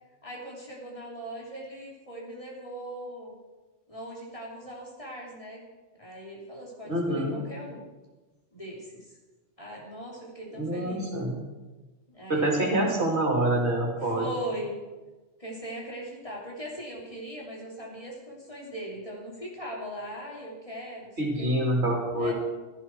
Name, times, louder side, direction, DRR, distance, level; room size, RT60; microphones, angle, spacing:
voice 1, 0.2-3.4 3.9-5.6 6.0-7.9 8.5-9.2 9.6-11.0 12.1-13.1 14.0-14.8 15.4-21.5 22.2-22.3, right 1 dB, 25° left, -3 dB, 3.1 m, -39 dB
voice 2, 6.9-7.4 10.5-11.4 12.3-14.3 21.2-22.3, right 1 dB, 60° right, -1 dB, 3.1 m, -26 dB
16.0 x 11.5 x 4.6 m, 1.2 s
omnidirectional pair, 1.3 m